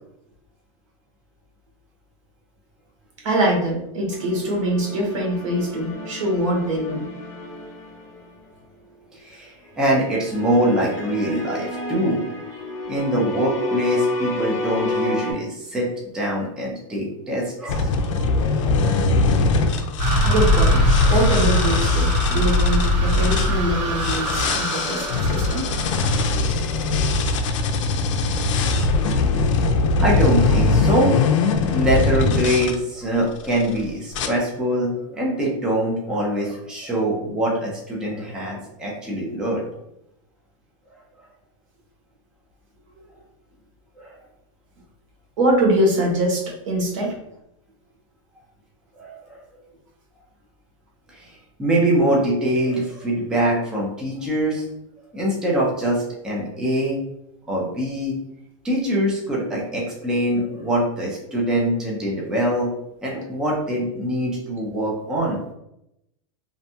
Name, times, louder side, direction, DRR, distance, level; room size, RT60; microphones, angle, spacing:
voice 1, 3.2-7.1 20.2-20.8 21.1-25.7 45.4-47.2, right 1 dB, 75° right, -1 dB, 1.0 m, -23 dB
sound 1, 4.1-8.5 9.9-15.3, left 1 dB, 20° left, 0.9 m, -30 dB
voice 2, 9.1-12.2 12.9-15.9 16.1-19.0 20.2-20.3 23.8-23.9 24.5-25.1 25.9-26.9 28.7-29.6 30.0-31.2 31.7-39.7 44.0-44.1 49.0-49.4 51.1-54.6 55.1-57.0 57.5-58.2 58.6-62.7 63.0-65.4, right 1 dB, 5° right, -4 dB, 0.4 m, -24 dB
sound 2, 17.7-23.5 24.0-32.8 33.4-33.7 34.1-34.3, left 3 dB, 70° left, 0.4 m, -22 dB
sound 3, 20.0-26.4, left 1 dB, 60° right, 1.2 m, -21 dB
2.6 x 2.2 x 2.6 m, 0.82 s
supercardioid pair, 160°, 17 cm